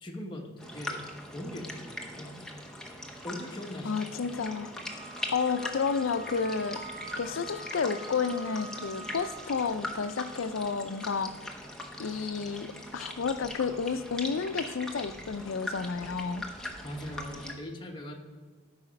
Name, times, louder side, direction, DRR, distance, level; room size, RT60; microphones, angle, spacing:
voice 1, 0.0-2.4 3.2-4.0 16.8-18.1, left 1 dB, 25° left, 0 dB, 1.0 m, -40 dB
sound 1, 0.6-17.5, left 1 dB, 5° left, 0.8 m, -41 dB
voice 2, 3.8-4.7 5.3-6.8 7.2-11.6 12.0-16.5, left 5 dB, 85° left, 11 dB, 0.5 m, -31 dB
Wind instrument woodwind instrument, 4.8-9.5, right 2 dB, 40° right, 1.5 m, -45 dB
13.0 x 4.9 x 5.2 m, 1.5 s
head